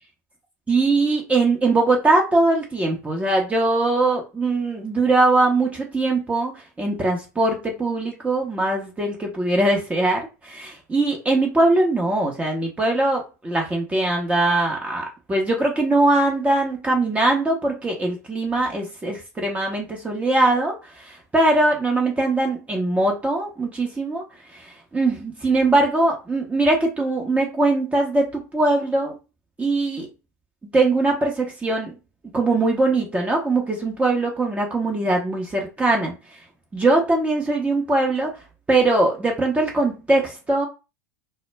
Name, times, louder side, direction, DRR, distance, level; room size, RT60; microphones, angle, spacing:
voice 1, 0.7-24.2 24.5-29.1 29.6-30.1 30.7-31.9 32.2-36.1 36.7-38.3 38.7-40.7, right 2 dB, 15° right, 0 dB, 0.8 m, -21 dB
2.1 x 2.0 x 3.3 m, 0.29 s
hypercardioid pair, 90°, 10 cm